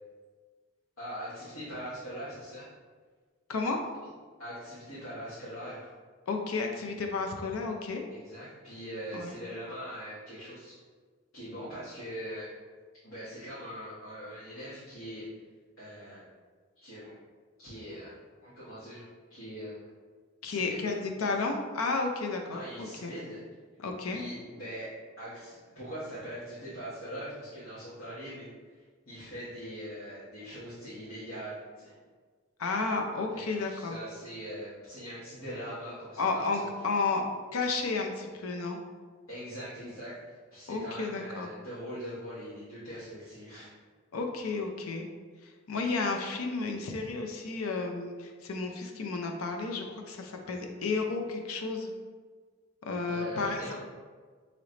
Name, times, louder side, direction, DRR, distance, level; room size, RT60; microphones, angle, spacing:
voice 1, 1.0-2.7 4.4-5.9 8.1-10.8 11.3-12.5 13.0-15.3 15.8-16.2 16.7-17.2 17.6-18.2 18.4-19.0 19.3-19.8 20.4-20.9 22.5-23.4 24.1-28.5 29.0-32.0 33.3-36.7 39.3-40.2 40.5-43.7 53.1-53.7, equal, 75° left, -13 dB, 1.3 m, -42 dB
voice 2, 6.3-8.0 9.1-9.3 20.4-23.1 23.8-24.2 32.6-34.0 36.2-37.2 37.5-38.8 40.7-41.5 44.1-45.1 45.4-51.9 52.9-53.7, left 3 dB, 90° left, 3 dB, 0.5 m, -32 dB
3.2 x 3.0 x 3.8 m, 1.5 s
head